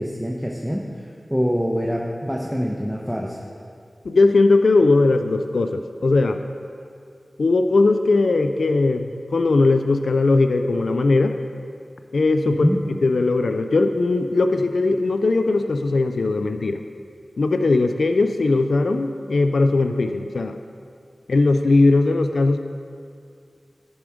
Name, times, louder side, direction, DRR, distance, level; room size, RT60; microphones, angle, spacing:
voice 1, 0.0-3.4 12.5-12.8, equal, ahead, -2 dB, 1.0 m, -25 dB
voice 2, 4.0-6.4 7.4-9.1 9.3-11.4 12.1-12.7 13.0-16.8 17.4-20.6 21.3-22.6, left 3 dB, 90° left, 8 dB, 0.4 m, -19 dB
10.5 x 7.2 x 5.0 m, 2.3 s
cardioid pair, 45°, 0 cm